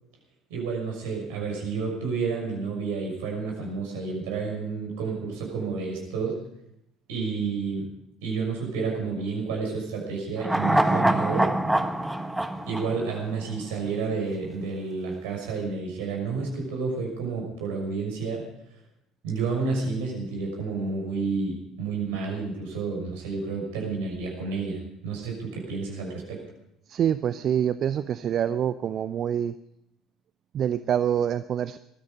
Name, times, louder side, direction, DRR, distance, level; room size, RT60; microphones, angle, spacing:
voice 1, 0.5-6.4 7.1-7.9 8.2-11.5 12.7-18.5 19.2-26.4, right 4 dB, 70° right, 0 dB, 6.0 m, -30 dB
sound 1, 10.4-13.8 14.1-14.2, right 1 dB, 5° right, 1.3 m, -25 dB
voice 2, 26.9-29.5 30.5-31.8, right 9 dB, 45° right, 14 dB, 0.5 m, -26 dB
19.5 x 13.5 x 5.3 m, 0.80 s
figure-of-eight pair, 55°, 0 cm